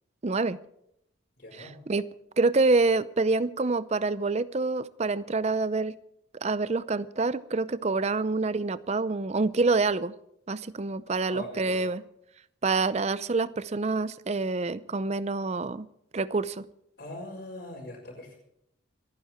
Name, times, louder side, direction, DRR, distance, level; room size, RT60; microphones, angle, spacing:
voice 1, 0.2-0.6 1.6-2.1 2.4-6.0 6.4-10.1 10.5-12.0 12.6-15.9 16.1-16.6, right 3 dB, 35° right, 0.5 m, -27 dB
voice 2, 1.4-1.8 11.3-11.9 17.0-18.4, left 1 dB, 55° left, 5.0 m, -41 dB
27.0 x 9.8 x 4.4 m
head